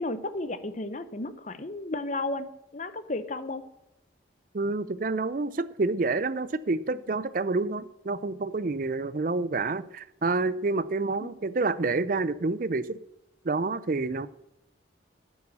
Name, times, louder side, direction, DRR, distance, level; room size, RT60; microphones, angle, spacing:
voice 1, 0.0-3.6, left 2 dB, 40° left, 12 dB, 0.7 m, -33 dB
voice 2, 4.5-13.0 13.4-14.3, right 3 dB, 45° right, 16 dB, 0.5 m, -28 dB
8.3 x 7.0 x 8.5 m, 0.86 s
head